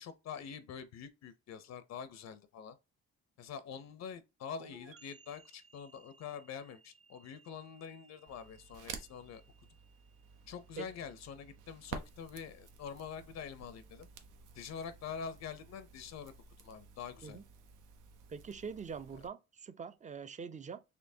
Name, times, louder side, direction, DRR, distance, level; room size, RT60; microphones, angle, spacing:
voice 1, 0.0-2.8 3.4-9.4 10.5-14.1 14.5-16.3 16.6-17.4, left 7 dB, 60° left, 0.6 m, -45 dB
sound 1, 4.6-12.1, right 2 dB, 45° right, 0.9 m, -62 dB
Crackle, 8.3-19.3, right 6 dB, 85° right, 0.7 m, -52 dB
voice 2, 18.3-20.8, right 6 dB, 25° right, 0.4 m, -44 dB
4.4 x 2.8 x 2.6 m
cardioid pair, 90°, 30 cm